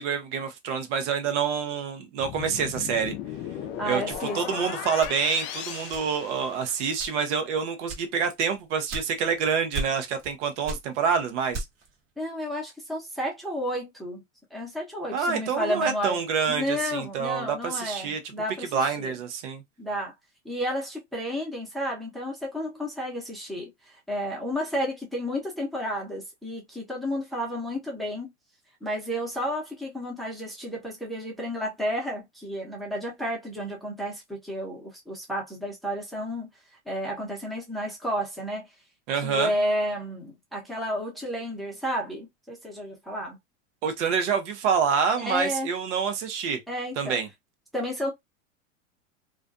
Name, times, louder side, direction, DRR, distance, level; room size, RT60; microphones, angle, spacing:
voice 1, 0.0-3.1 3.9-4.0 4.3-11.6 15.1-18.2 18.7-19.6 39.1-39.5 43.8-46.6 47.0-47.3, right 6 dB, 60° right, 0.8 m, -27 dB
sound 1, 2.2-6.9, left 10 dB, 30° left, 0.4 m, -36 dB
voice 2, 3.8-4.6 12.2-14.2 14.5-16.2 16.5-19.2 19.8-20.1 20.4-28.3 28.8-36.5 36.9-38.7 39.2-43.4 45.2-45.7 46.7-47.2 47.7-48.1, equal, ahead, 0.8 m, -31 dB
sound 2, 4.1-5.5 5.9-6.4 6.9-7.4 7.9-9.4 9.7-10.4 10.6-12.0, right 2 dB, 40° right, 1.1 m, -36 dB
2.5 x 2.2 x 2.4 m
hypercardioid pair, 110°, 39 cm